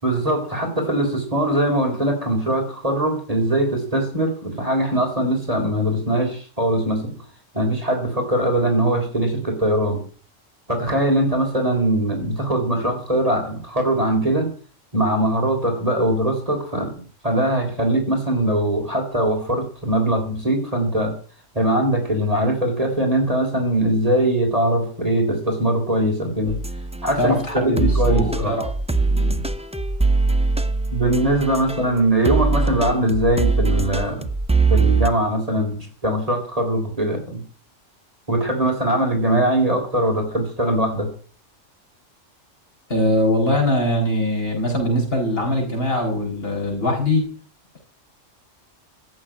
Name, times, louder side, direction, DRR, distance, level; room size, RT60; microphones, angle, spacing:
voice 1, 0.0-7.1 7.5-10.0 10.7-14.5 14.9-21.1 21.5-26.6 27.0-28.6 30.9-34.2 34.7-37.4 38.3-41.1, right 1 dB, 30° right, 2 dB, 3.9 m, -21 dB
sound 1, 26.5-32.0 32.3-35.1, right 3 dB, 5° right, 0.6 m, -22 dB
voice 2, 27.2-28.6 29.1-29.4 42.9-47.2, left 1 dB, 50° left, 0 dB, 6.2 m, -22 dB
15.0 x 7.4 x 8.8 m, 0.41 s
omnidirectional pair, 1.3 m